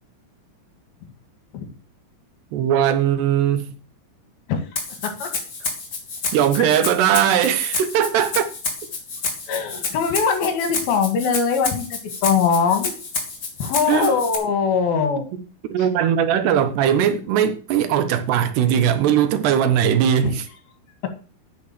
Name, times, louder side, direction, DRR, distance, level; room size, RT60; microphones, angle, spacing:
voice 1, 2.5-3.7 6.3-8.5 13.9-14.1 15.7-20.5, right 9 dB, 85° right, 3.3 m, -19 dB
Rattle (instrument), 4.8-14.4, left 4 dB, 35° left, 2.6 m, -29 dB
voice 2, 9.5-12.9 13.6-15.3, left 6 dB, 65° left, 3.7 m, -21 dB
8.9 x 7.9 x 7.6 m
omnidirectional pair, 4.7 m